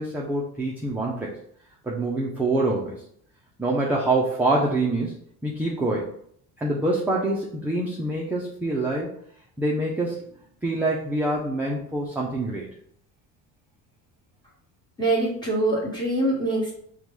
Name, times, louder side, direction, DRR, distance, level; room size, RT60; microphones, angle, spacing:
voice 1, 0.0-1.4 1.8-3.0 3.6-5.1 5.4-6.1 6.6-9.1 9.6-10.2 10.6-12.7, right 2 dB, 5° right, -4 dB, 0.3 m, -25 dB
voice 2, 15.0-16.7, right 2 dB, 10° left, -5 dB, 1.2 m, -24 dB
5.3 x 2.2 x 3.0 m, 0.65 s
cardioid pair, 155°, 37 cm